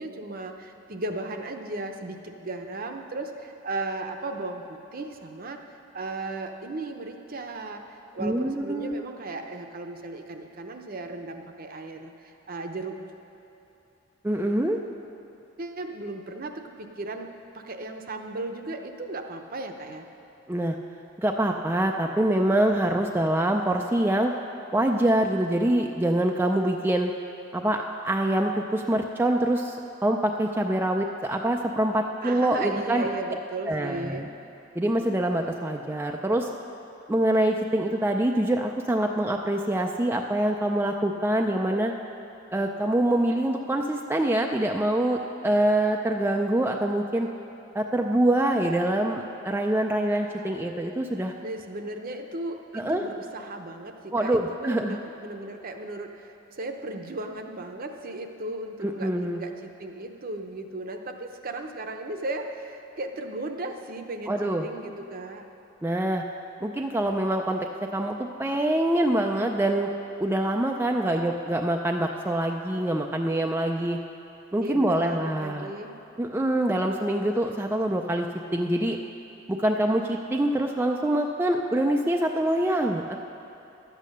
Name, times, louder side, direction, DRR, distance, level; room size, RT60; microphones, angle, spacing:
voice 1, 0.0-13.1 15.6-17.3 17.5-20.1 32.2-34.3 51.4-65.4 74.6-75.9, right 2 dB, 45° right, 5 dB, 0.8 m, -36 dB
voice 2, 8.2-8.9 14.2-14.8 20.5-20.8 21.2-24.3 24.7-27.1 27.5-33.1 33.7-34.3 34.8-36.5 37.1-41.9 42.5-47.3 47.7-51.3 52.7-53.0 54.1-55.0 58.8-59.4 64.3-64.7 65.8-66.2 66.6-67.7 67.9-69.9 70.2-74.0 74.5-75.7 76.2-78.3 78.5-79.0 79.5-83.2, right 1 dB, 10° right, 2 dB, 0.4 m, -25 dB
11.5 x 8.3 x 6.5 m, 3.0 s
head